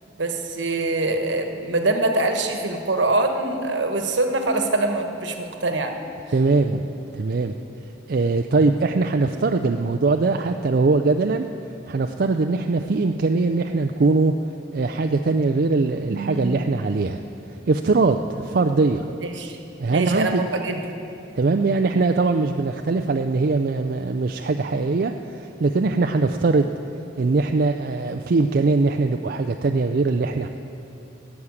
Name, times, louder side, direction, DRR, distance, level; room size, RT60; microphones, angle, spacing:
voice 1, 0.2-5.9 16.1-16.7 19.2-19.6 19.9-20.9, right 2 dB, 80° right, 5 dB, 1.3 m, -24 dB
voice 2, 6.3-6.9 7.1-7.5 8.1-11.5 11.9-14.3 14.7-17.2 17.7-19.1 19.8-20.4 21.4-26.7 27.2-30.5, right 3 dB, 55° right, 5 dB, 0.4 m, -21 dB
14.5 x 7.3 x 9.6 m, 2.7 s
head